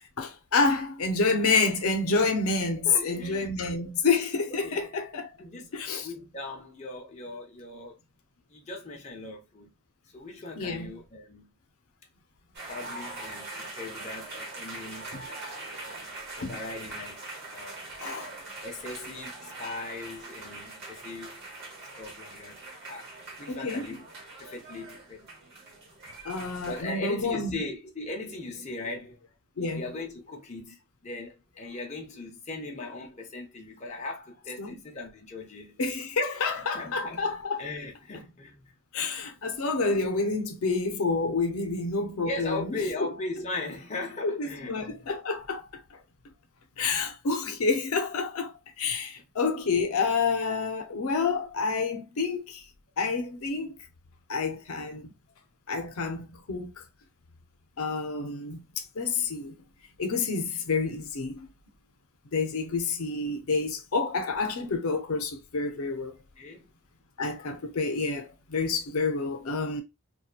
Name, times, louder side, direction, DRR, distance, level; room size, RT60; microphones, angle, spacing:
voice 1, 0.2-5.3 5.7-6.1 10.6-10.9 15.1-15.2 16.4-16.6 18.0-18.3 23.5-23.9 26.2-27.6 29.6-29.8 34.6-34.8 35.8-37.7 38.9-42.8 44.2-46.0 46.8-52.6 53.0-53.8 54.3-55.1 55.7-56.8 57.8-59.5 60.0-61.5 62.3-66.1 67.2-69.8, left 4 dB, 85° left, 0.5 m, -28 dB
voice 2, 2.6-3.5 4.6-4.9 5.4-8.0 8.5-9.7 10.1-11.5 12.7-15.1 15.5-16.1 16.3-17.2 17.5-17.8 18.6-21.4 22.0-22.6 22.9-23.1 23.4-24.1 24.4-25.3 26.6-29.2 29.6-35.8 36.7-37.3 37.6-38.7 42.2-44.9 66.4-66.7, left 2 dB, 30° left, 0.6 m, -39 dB
sound 1, 12.6-26.8, right 2 dB, 50° right, 1.0 m, -42 dB
2.8 x 2.2 x 2.4 m
head